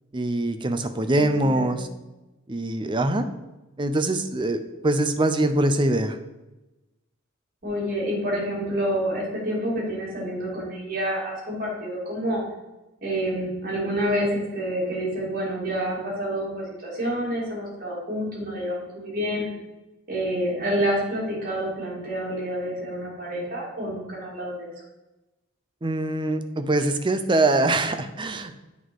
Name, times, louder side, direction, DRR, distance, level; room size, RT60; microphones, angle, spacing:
voice 1, 0.1-1.9 2.5-3.3 3.8-6.2 25.8-28.5, right 2 dB, 20° right, 9 dB, 0.5 m, -23 dB
voice 2, 1.1-1.8 7.6-12.4 13.0-19.5 20.1-24.7, equal, 45° right, -4 dB, 2.7 m, -28 dB
8.4 x 4.1 x 4.6 m, 1.0 s
head